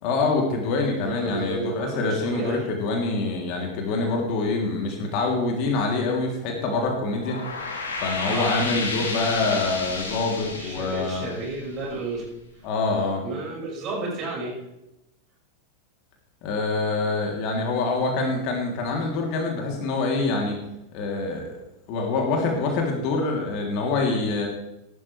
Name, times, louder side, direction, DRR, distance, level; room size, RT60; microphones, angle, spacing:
voice 1, 0.0-7.4 8.0-11.2 12.6-13.2 16.4-20.6 20.9-21.6 21.9-24.5, left 3 dB, 45° left, 0 dB, 3.1 m, -25 dB
voice 2, 1.0-2.6 8.2-8.7 10.5-12.3 13.2-14.6, right 3 dB, 35° right, -3 dB, 5.8 m, -32 dB
sound 1, 7.0-12.3, left 3 dB, 70° left, 2.6 m, -32 dB
16.5 x 12.0 x 3.4 m, 0.88 s
figure-of-eight pair, 90°, 0 cm